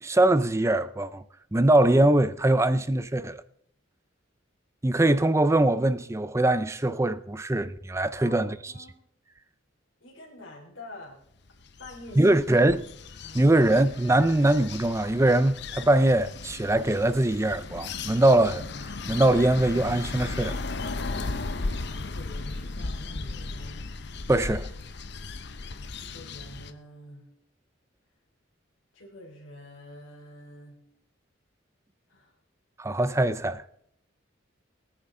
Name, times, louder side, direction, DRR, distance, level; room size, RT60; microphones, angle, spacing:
voice 1, 0.0-1.2 1.5-3.4 4.8-8.7 12.2-12.9 13.3-18.6 19.1-20.6 24.3-24.7 32.8-33.6, right 1 dB, 15° right, 0.5 m, -22 dB
voice 2, 8.2-9.0 10.0-11.2 11.8-12.3 13.2-13.4 22.0-23.8 25.9-27.2 28.9-30.8 32.1-32.3, left 1 dB, 75° left, 3.4 m, -47 dB
sound 1, 11.5-26.7, left 3 dB, 60° left, 0.8 m, -36 dB
21.0 x 9.7 x 3.7 m
head